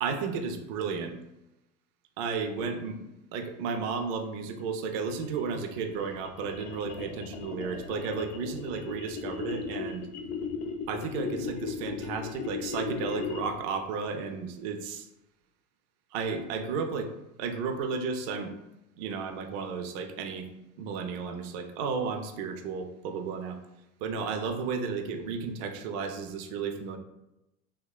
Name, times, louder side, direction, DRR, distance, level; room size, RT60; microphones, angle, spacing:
voice 1, 0.0-1.2 2.2-3.0 3.3-10.1 10.9-15.1 16.1-17.1 17.4-18.5 19.0-20.5 20.8-23.6 24.0-27.0, right 5 dB, 45° right, 6 dB, 0.4 m, -33 dB
sound 1, 5.0-13.7, left 5 dB, 65° left, 0.5 m, -37 dB
2.8 x 2.2 x 2.2 m, 0.91 s
figure-of-eight pair, 75°, 41 cm